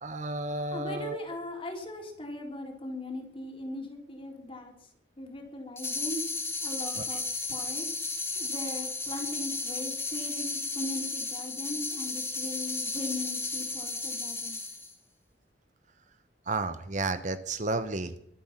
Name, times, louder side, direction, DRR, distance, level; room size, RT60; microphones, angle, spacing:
voice 1, 0.0-1.3 7.0-7.1 16.5-18.2, right 3 dB, 45° right, 11 dB, 1.0 m, -32 dB
voice 2, 0.7-4.9 5.2-6.2 6.6-7.2 7.5-7.9 8.3-14.6, left 1 dB, 30° left, 2 dB, 3.8 m, -39 dB
sound 1, 5.8-14.9, left 3 dB, 15° left, 3.3 m, -34 dB
23.5 x 8.7 x 5.9 m, 0.71 s
head